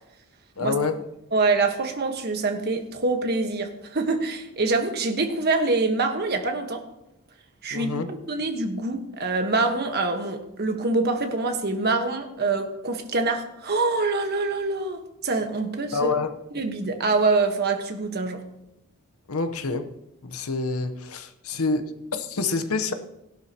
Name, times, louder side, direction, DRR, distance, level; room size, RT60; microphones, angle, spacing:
voice 1, 0.6-1.0 7.7-8.1 15.9-16.4 19.3-19.9 20.2-22.9, left 4 dB, 75° left, 9 dB, 0.9 m, -27 dB
voice 2, 1.3-6.8 7.6-16.1 16.5-18.4, right 3 dB, 45° right, 5 dB, 1.3 m, -25 dB
17.0 x 11.5 x 2.9 m, 0.88 s
head